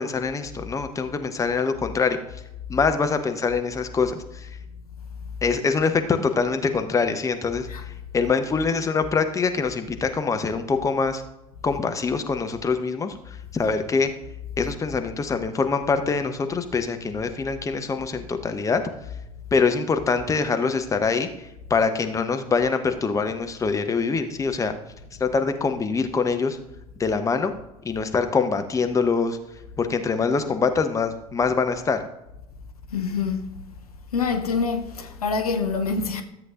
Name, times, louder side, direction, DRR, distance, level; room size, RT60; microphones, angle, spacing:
voice 1, 0.0-2.2 2.7-4.5 5.4-7.7 8.1-11.2 11.6-14.1 14.6-18.8 19.5-21.3 21.7-24.7 25.2-26.6 27.0-27.5 27.8-29.4 29.8-32.0, left 5 dB, 15° left, 0.8 m, -24 dB
voice 2, 32.9-33.5 34.1-36.2, left 5 dB, 75° left, 0.7 m, -26 dB
13.5 x 7.7 x 2.5 m
figure-of-eight pair, 70°, 19 cm